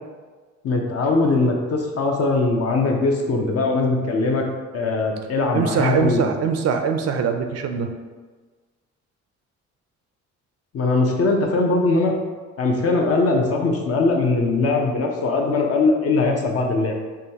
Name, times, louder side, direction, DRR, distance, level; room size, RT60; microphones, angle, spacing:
voice 1, 0.6-4.4 4.7-6.3 10.7-12.1 12.6-16.9, left 3 dB, 50° left, 1 dB, 0.7 m, -21 dB
voice 2, 5.5-7.9, right 6 dB, 55° right, 5 dB, 0.5 m, -22 dB
4.9 x 2.3 x 2.8 m, 1.4 s
cardioid pair, 90°, 30 cm